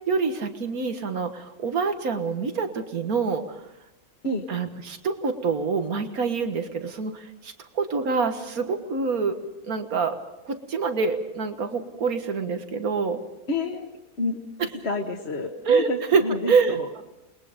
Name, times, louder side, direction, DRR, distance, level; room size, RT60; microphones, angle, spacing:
voice 1, 0.1-3.6 4.5-9.4 9.6-10.2 10.4-13.2 14.6-14.7 15.7-16.2 16.5-17.0, right 5 dB, 85° right, 7 dB, 2.0 m, -26 dB
voice 2, 13.5-13.9 14.2-14.4 14.8-17.0, left 2 dB, 50° left, 0 dB, 1.8 m, -29 dB
29.5 x 21.0 x 5.2 m, 0.91 s
omnidirectional pair, 1.5 m